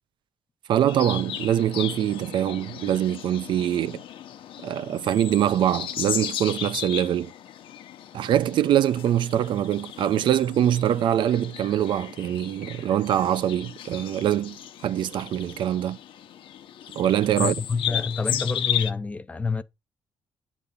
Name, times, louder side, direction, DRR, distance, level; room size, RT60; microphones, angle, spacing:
voice 1, 0.7-4.0 4.6-7.3 8.1-16.0 16.9-17.5, right 11 dB, 60° right, 0.5 m, -24 dB
sound 1, 0.9-18.9, left 11 dB, 65° left, 1.0 m, -35 dB
voice 2, 17.4-19.6, left 4 dB, 15° left, 0.5 m, -27 dB
9.7 x 4.1 x 6.7 m
cardioid pair, 170°, 9 cm